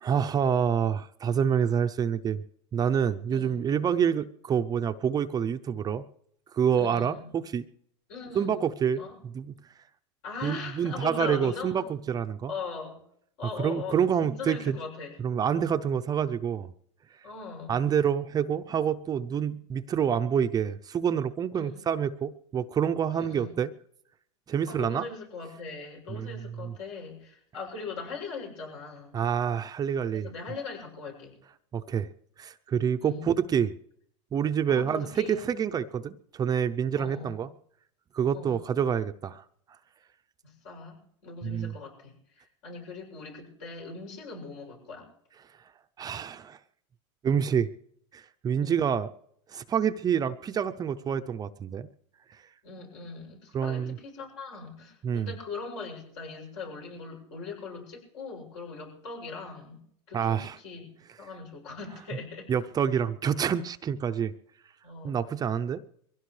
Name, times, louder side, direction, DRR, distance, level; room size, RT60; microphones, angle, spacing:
voice 1, 0.0-2.4 2.7-6.1 6.5-7.7 8.3-9.5 10.4-12.5 13.6-14.8 15.2-16.7 17.7-23.7 24.5-25.0 26.1-26.3 26.6-26.7 29.1-30.3 31.7-32.1 32.4-33.7 34.3-37.5 38.1-39.4 41.4-41.7 46.0-46.6 47.2-47.7 48.1-49.1 49.5-51.9 53.5-54.0 55.0-55.3 60.1-60.6 62.5-64.3 65.0-65.8, right 8 dB, 25° right, 9 dB, 0.6 m, -27 dB
voice 2, 6.7-7.3 8.1-8.5 8.9-9.1 10.2-11.8 12.5-13.0 13.4-15.2 17.2-17.7 21.5-21.8 23.1-23.5 24.7-29.2 30.1-31.3 33.0-33.4 34.7-35.5 37.0-37.4 38.3-38.6 40.4-45.1 48.6-48.8 52.6-59.8 60.1-60.9 61.2-62.5 64.8-65.2, left 4 dB, 70° left, 0 dB, 7.2 m, -40 dB
23.0 x 16.5 x 3.3 m, 0.69 s
supercardioid pair, 120°, 16 cm